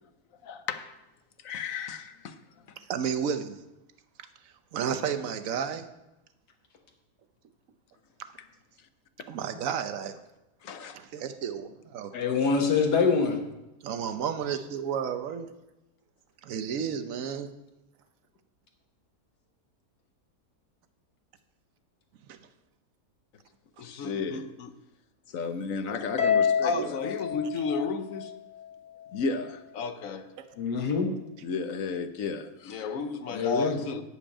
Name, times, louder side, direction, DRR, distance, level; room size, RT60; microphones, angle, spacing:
voice 1, 0.4-0.9 1.4-2.3 10.7-11.0 23.8-24.7 25.3-28.4 29.1-30.2 31.4-34.0, left 4 dB, 60° left, 1.1 m, -32 dB
voice 2, 2.8-3.6 4.4-5.9 9.3-10.2 10.9-12.1 13.8-15.5 16.4-17.5 22.3-22.4 25.8-26.1 26.7-26.9 27.6-27.7, right 8 dB, 60° right, 1.1 m, -32 dB
voice 3, 12.1-13.4 30.6-31.1 33.3-33.8, left 5 dB, 85° left, 1.8 m, -25 dB
Harp, 26.2-28.6, left 7 dB, 30° left, 0.9 m, -28 dB
11.5 x 5.2 x 8.6 m
omnidirectional pair, 1.7 m